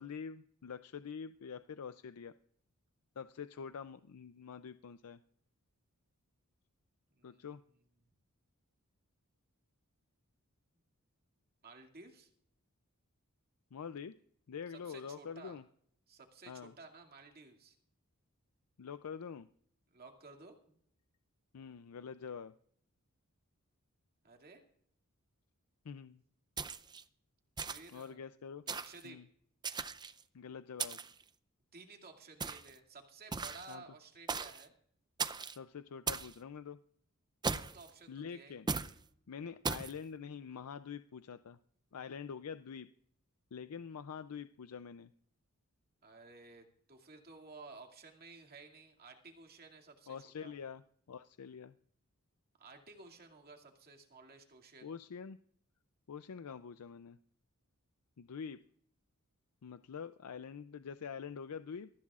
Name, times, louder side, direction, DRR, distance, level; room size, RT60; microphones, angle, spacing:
voice 1, 0.0-2.3 3.2-5.2 7.2-7.6 13.7-14.2 14.5-15.6 16.5-16.7 18.8-19.5 21.5-22.5 25.8-26.2 27.9-28.6 29.0-29.3 30.3-31.0 33.7-33.8 35.6-36.8 38.1-38.7 39.3-41.6 41.9-42.9 43.5-45.1 50.1-50.8 51.1-51.8 54.8-55.4 56.1-57.2 58.2-58.6 59.6-61.9, left 6 dB, 75° left, 12 dB, 0.5 m, -45 dB
voice 2, 7.1-7.5 11.6-12.3 14.7-15.6 16.1-17.8 19.9-20.8 24.2-24.6 27.6-28.2 28.7-29.2 31.7-34.7 37.5-38.6 39.5-39.6 46.0-50.5 52.6-54.9, right 3 dB, 45° right, 2 dB, 2.3 m, -55 dB
sound 1, 26.6-27.0 27.6-28.0 28.7-29.0 29.6-30.2 30.8-31.2 32.4-32.8 33.3-33.7 34.3-34.6 35.2-35.6 36.1-36.3 37.4-37.9 38.7-38.9 39.6-39.9, right 5 dB, 20° right, 0.5 m, -38 dB
23.0 x 15.0 x 2.4 m, 0.65 s
head